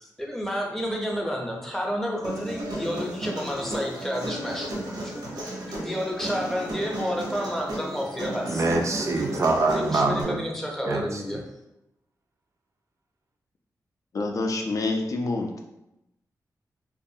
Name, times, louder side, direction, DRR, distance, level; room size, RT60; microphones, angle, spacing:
voice 1, 0.0-4.7 5.0-8.6 9.7-11.4, equal, 5° left, -1 dB, 0.5 m, -30 dB
Human voice, 2.2-10.2, right 1 dB, 85° right, 0.7 m, -34 dB
voice 2, 8.5-10.4 10.8-11.4, right 3 dB, 50° right, 2 dB, 0.4 m, -25 dB
voice 3, 14.1-15.6, left 3 dB, 55° left, 2 dB, 0.4 m, -27 dB
2.3 x 2.2 x 2.7 m, 0.88 s
wide cardioid pair, 85°, 7 cm